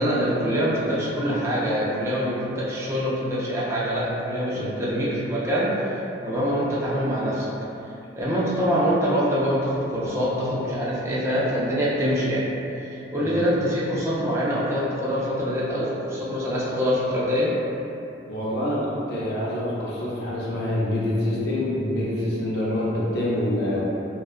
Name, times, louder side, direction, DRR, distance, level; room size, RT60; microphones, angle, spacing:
voice 1, 0.0-5.9 6.2-7.5 8.1-12.5 12.8-17.5, equal, 15° right, -7 dB, 0.4 m, -24 dB
voice 2, 18.3-23.8, left 1 dB, 65° left, -7 dB, 0.6 m, -26 dB
2.6 x 2.3 x 2.3 m, 2.8 s
head